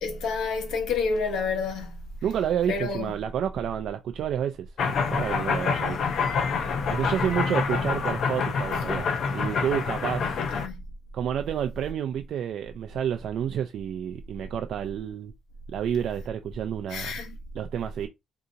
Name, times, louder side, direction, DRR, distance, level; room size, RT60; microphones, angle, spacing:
voice 1, 0.0-1.9 2.7-3.1 7.4-7.6 10.5-10.8 16.9-17.4, left 4 dB, 85° left, 1.0 m, -29 dB
voice 2, 2.2-4.7 5.1-6.0 6.9-10.4 11.1-15.3 15.7-17.2 17.5-18.1, right 9 dB, 65° right, 0.3 m, -29 dB
sound 1, 4.8-10.7, left 5 dB, 55° left, 0.6 m, -27 dB
2.8 x 2.4 x 3.8 m
cardioid pair, 130°, 0 cm